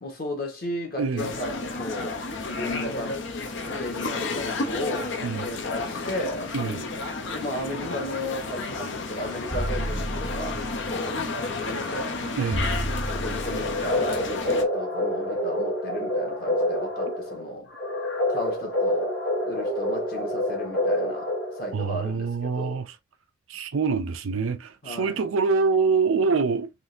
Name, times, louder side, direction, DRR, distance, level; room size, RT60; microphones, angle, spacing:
voice 1, 0.0-3.2 3.6-6.5 7.3-10.6 10.9-11.3 11.7-12.2 13.1-17.7 18.3-19.1 19.4-21.3 21.6-22.8 24.8-25.2, left 1 dB, 45° left, 1.3 m, -34 dB
voice 2, 1.0-1.3 5.2-5.5 6.5-6.8 12.4-12.6 21.7-22.9 23.5-26.7, right 4 dB, 85° right, 0.5 m, -25 dB
sound 1, 1.2-14.6, left 3 dB, 65° left, 0.6 m, -31 dB
sound 2, 9.5-10.9 12.5-13.9, right 1 dB, 15° right, 0.4 m, -31 dB
sound 3, 13.4-21.9, left 1 dB, 85° left, 1.6 m, -27 dB
3.6 x 2.5 x 2.6 m
head